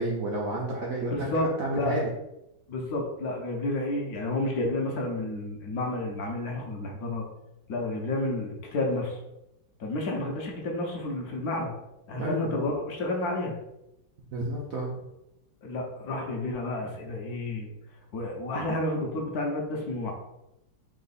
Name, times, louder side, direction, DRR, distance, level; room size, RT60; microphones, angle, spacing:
voice 1, 0.0-1.3 1.6-2.1 12.1-12.5 14.3-14.9, right 2 dB, 70° right, -3 dB, 0.8 m, -30 dB
voice 2, 1.1-2.0 2.7-7.2 7.7-9.2 9.8-11.7 12.1-13.5 15.6-17.7 18.1-20.1, left 2 dB, 60° left, 0 dB, 1.0 m, -30 dB
3.6 x 3.0 x 4.0 m, 0.90 s
omnidirectional pair, 2.1 m